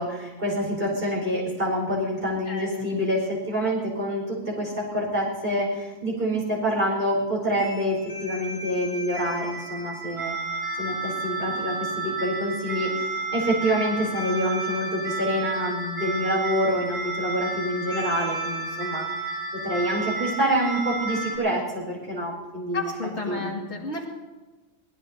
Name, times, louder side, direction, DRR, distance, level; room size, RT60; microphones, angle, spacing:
voice 1, 0.0-10.4 10.8-12.9 13.3-19.1 19.5-22.9 23.3-23.6, equal, 50° right, -2 dB, 5.2 m, -27 dB
voice 2, 2.5-2.9 22.7-24.0, left 3 dB, 60° left, -1 dB, 2.6 m, -32 dB
sound 1, 7.6-21.4, right 3 dB, 80° right, 6.2 m, -31 dB
22.5 x 19.5 x 2.8 m, 1.2 s
omnidirectional pair, 1.3 m